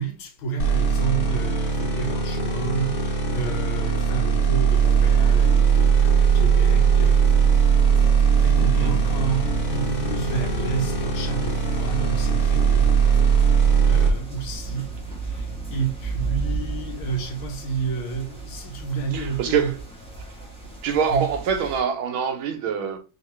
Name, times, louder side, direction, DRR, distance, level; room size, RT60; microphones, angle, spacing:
voice 1, 0.0-7.5 8.4-12.9 13.5-19.8 21.1-21.3, right 5 dB, 75° left, 1.7 m, -30 dB
sound 1, 0.6-14.1, right 6 dB, 50° left, 1.3 m, -20 dB
sound 2, 4.6-21.8, right 4 dB, 5° left, 1.0 m, -35 dB
voice 2, 8.6-9.0 19.1-19.7 20.8-23.0, right 6 dB, 75° right, 1.5 m, -25 dB
3.6 x 2.9 x 4.2 m
omnidirectional pair, 2.4 m